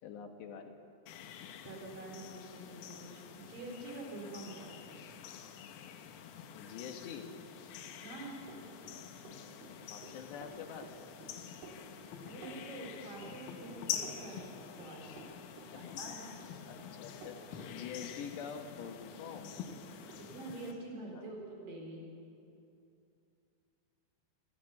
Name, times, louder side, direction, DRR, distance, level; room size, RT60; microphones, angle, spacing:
voice 1, 0.0-0.8 6.5-7.3 9.9-11.1 15.7-16.3 16.7-19.6 21.1-21.2, left 7 dB, 65° left, 5 dB, 3.3 m, -46 dB
sound 1, 1.1-20.7, left 8 dB, 90° left, 4.0 m, -47 dB
voice 2, 1.6-5.0 8.0-8.4 12.2-14.5 14.8-15.3 15.7-16.4 20.2-22.1, right 2 dB, 45° right, 0 dB, 5.9 m, -46 dB
Run, 7.8-19.0 19.3-20.2, right 3 dB, 75° right, 6.0 m, -53 dB
27.5 x 16.5 x 8.6 m, 2.6 s
omnidirectional pair, 5.8 m